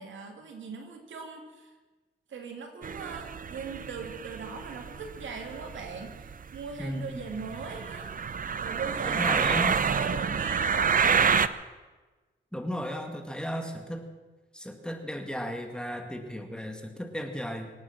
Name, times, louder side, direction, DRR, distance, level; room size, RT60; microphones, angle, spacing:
voice 1, 0.0-1.7 2.3-8.1 8.6-11.2, right 5 dB, 85° right, 3 dB, 2.8 m, -40 dB
sound 1, 2.8-11.5, right 6 dB, 45° right, 0.7 m, -28 dB
voice 2, 6.8-7.2 9.1-9.7 12.5-14.1 14.5-17.7, equal, 5° left, 4 dB, 2.2 m, -35 dB
25.5 x 9.2 x 6.1 m, 1.3 s
cardioid pair, 95°, 19 cm